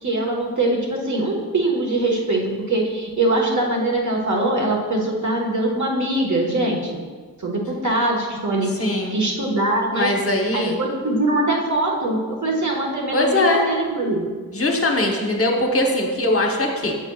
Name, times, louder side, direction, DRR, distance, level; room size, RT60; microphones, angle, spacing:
voice 1, 0.0-7.0 7.4-10.1 10.5-14.2, right 2 dB, 50° right, -1 dB, 1.4 m, -22 dB
voice 2, 8.8-9.2 9.9-10.8 13.1-13.6 14.5-17.0, left 1 dB, 40° left, 1 dB, 0.9 m, -21 dB
8.0 x 6.9 x 2.3 m, 1.5 s
wide cardioid pair, 75°, 36 cm